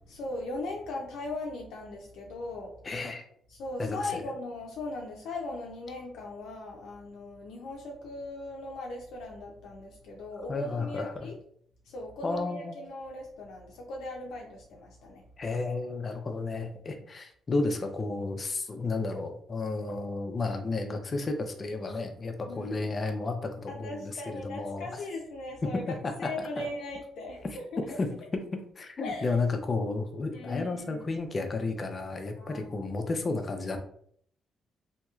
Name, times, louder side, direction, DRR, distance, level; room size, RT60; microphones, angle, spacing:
voice 1, 0.1-2.7 3.5-11.4 11.9-15.2 22.5-22.9 23.7-25.8 26.2-28.0 29.0-29.3 30.3-31.1 32.4-32.8, left 2 dB, 80° left, -1 dB, 0.5 m, -39 dB
voice 2, 2.8-3.2 3.8-4.0 10.5-11.3 12.2-12.8 15.4-24.9 25.6-26.7 27.4-33.8, left 3 dB, 35° left, 5 dB, 0.5 m, -32 dB
2.9 x 2.8 x 2.3 m, 0.63 s
cardioid pair, 90°, 0 cm